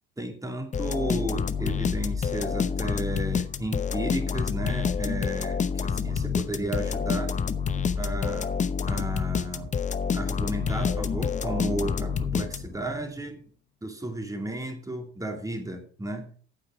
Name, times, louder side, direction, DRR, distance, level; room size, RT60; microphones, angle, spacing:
voice 1, 0.2-7.3 8.0-8.5 8.9-9.7 10.1-13.4 13.8-16.3, right 1 dB, 10° right, 4 dB, 2.6 m, -33 dB
sound 1, 0.7-12.9, left 6 dB, 25° left, 0.8 m, -28 dB
8.9 x 8.6 x 5.1 m, 0.44 s
figure-of-eight pair, 65°, 32 cm